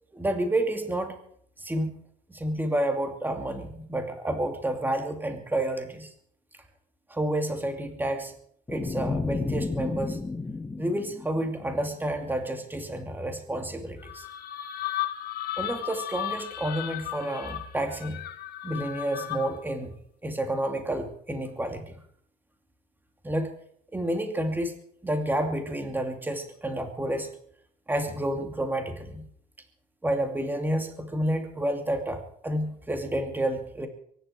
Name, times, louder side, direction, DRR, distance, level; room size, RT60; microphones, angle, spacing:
voice 1, 0.1-1.2 1.6-1.9 2.3-6.1 7.1-8.3 8.7-10.2 10.8-14.3 15.6-18.2 18.6-19.9 20.2-22.0 23.2-23.5 23.9-24.7 25.0-27.3 27.9-29.2 30.0-33.9, right 1 dB, 10° right, 5 dB, 2.5 m, -30 dB
sound 1, 8.7-11.9, left 3 dB, 15° left, 1.0 m, -32 dB
sound 2, 14.0-19.7, left 12 dB, 65° left, 1.7 m, -35 dB
24.0 x 11.0 x 4.7 m, 0.65 s
cardioid pair, 110°, 17 cm